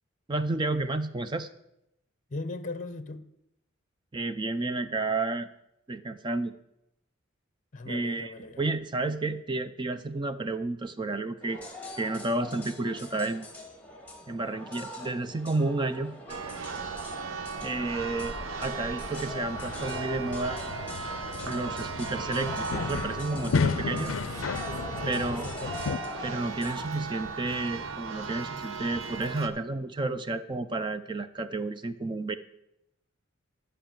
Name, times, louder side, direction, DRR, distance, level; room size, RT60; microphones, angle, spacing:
voice 1, 0.3-1.5 4.1-5.5 5.9-6.5 7.9-11.6 12.0-13.5 14.3-16.1 17.6-20.6 21.4-24.1 25.1-25.5 26.2-32.3, right 2 dB, 25° right, 11 dB, 0.4 m, -31 dB
voice 2, 2.3-3.3 7.7-8.6 24.4-26.0, left 2 dB, 40° left, 11 dB, 0.7 m, -39 dB
sound 1, 11.4-26.9, left 1 dB, 10° left, 1.9 m, -42 dB
Church bell, 16.3-29.5, right 5 dB, 70° right, 0.9 m, -37 dB
sound 2, 19.5-26.0, left 5 dB, 75° left, 0.4 m, -33 dB
11.5 x 5.5 x 7.3 m, 0.82 s
head